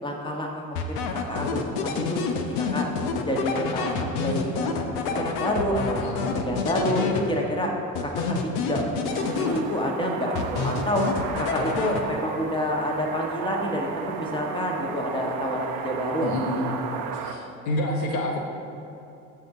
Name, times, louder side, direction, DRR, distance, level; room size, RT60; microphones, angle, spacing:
voice 1, 0.0-2.9 3.3-4.7 5.0-7.7 8.0-11.0 11.4-16.3 16.6-16.8, equal, 10° left, 0 dB, 1.5 m, -28 dB
sound 1, 0.8-7.6 7.9-10.0 10.4-12.4, left 5 dB, 60° left, 0.9 m, -28 dB
voice 2, 6.0-6.5 16.2-16.7 17.1-18.4, left 1 dB, 80° left, 1 dB, 1.1 m, -29 dB
sound 2, 9.1-17.3, right 7 dB, 55° right, 0.8 m, -34 dB
14.0 x 4.8 x 3.8 m, 2.8 s
hypercardioid pair, 60°, 42 cm